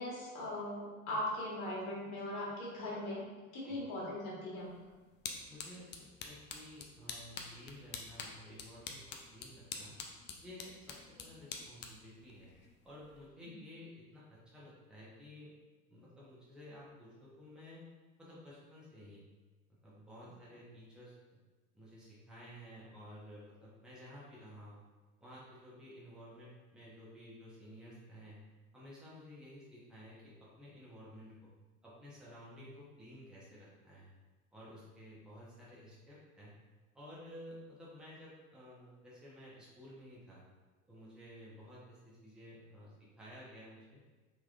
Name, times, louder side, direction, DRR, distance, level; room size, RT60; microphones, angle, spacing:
voice 1, 0.0-3.2 3.5-4.7, left 1 dB, 60° left, -5 dB, 1.5 m, -39 dB
sound 1, 4.6-13.3, left 5 dB, 25° left, 0.4 m, -48 dB
voice 2, 5.5-9.9 10.4-12.5 12.8-15.5 15.9-17.9 18.2-19.2 19.8-21.1 21.7-24.8 25.2-28.4 28.7-31.4 31.8-34.1 34.5-36.5 36.9-40.4 40.8-44.0, equal, ahead, -8 dB, 1.0 m, -53 dB
3.5 x 3.0 x 2.5 m, 1.3 s
hypercardioid pair, 80°, 43 cm